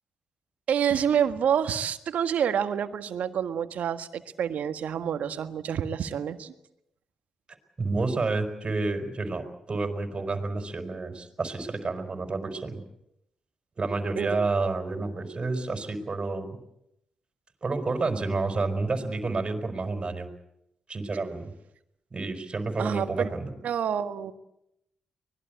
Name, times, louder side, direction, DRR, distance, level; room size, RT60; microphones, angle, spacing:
voice 1, 0.7-6.5 14.1-14.5 22.8-23.3 23.6-24.3, right 8 dB, 70° right, 10 dB, 1.6 m, -28 dB
voice 2, 7.8-12.8 13.8-16.6 17.6-20.3 20.9-21.5 22.1-23.5, right 3 dB, 40° right, 6 dB, 5.0 m, -29 dB
24.5 x 20.5 x 8.2 m, 0.82 s
hypercardioid pair, 40°, 3 cm